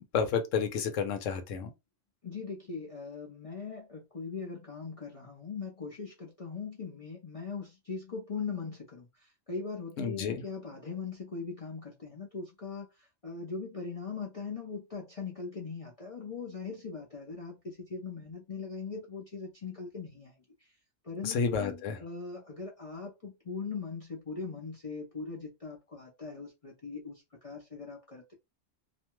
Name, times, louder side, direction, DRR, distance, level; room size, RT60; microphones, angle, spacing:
voice 1, 0.1-1.7 10.0-10.4 21.2-22.0, left 6 dB, 75° left, 1.0 m, -30 dB
voice 2, 2.2-12.9 13.2-20.4 21.0-28.3, left 5 dB, 40° left, 0.5 m, -40 dB
2.5 x 2.2 x 2.9 m
omnidirectional pair, 1.3 m